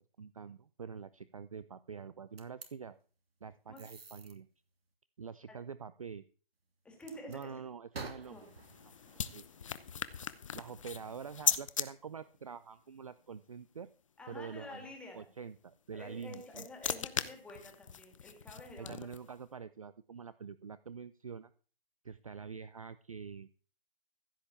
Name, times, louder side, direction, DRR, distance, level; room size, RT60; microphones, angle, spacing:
voice 1, 0.2-3.0 3.4-4.5 5.2-6.2 7.3-8.4 9.3-9.4 10.5-13.9 14.3-14.9 15.1-16.7 18.8-21.5 22.0-23.5, right 6 dB, 35° right, 15 dB, 0.5 m, -46 dB
sound 1, 2.4-2.7 3.8-4.3 7.0-7.5 7.9-10.2, right 3 dB, 80° right, 2.7 m, -50 dB
voice 2, 6.8-7.5 8.3-8.5 14.2-15.3 15.9-19.0, left 1 dB, 5° left, 1 dB, 2.1 m, -49 dB
sound 2, 8.2-11.9 16.0-19.4, left 7 dB, 35° left, 0.7 m, -38 dB
15.0 x 5.4 x 8.3 m, 0.40 s
hypercardioid pair, 165°, 29 cm